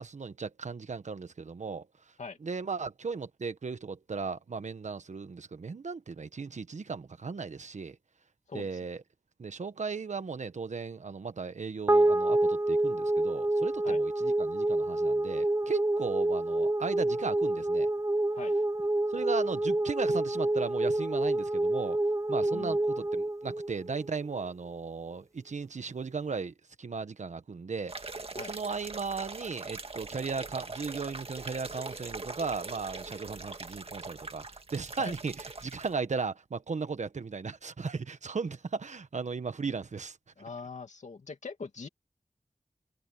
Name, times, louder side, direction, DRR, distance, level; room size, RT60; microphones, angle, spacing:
voice 1, 0.0-1.9 2.4-8.0 8.5-9.0 9.4-17.9 19.1-22.0 22.3-28.1 28.4-40.2, right 5 dB, 85° right, 1.3 m, -36 dB
voice 2, 8.5-8.8 13.8-14.0 18.3-18.6 22.5-22.8 28.4-28.5 35.0-35.1 40.4-41.9, left 4 dB, 90° left, 2.6 m, -42 dB
sound 1, 11.9-24.4, right 2 dB, 25° right, 1.0 m, -28 dB
sound 2, 27.9-35.9, right 3 dB, 55° right, 1.9 m, -42 dB
wide cardioid pair, 50°, 12 cm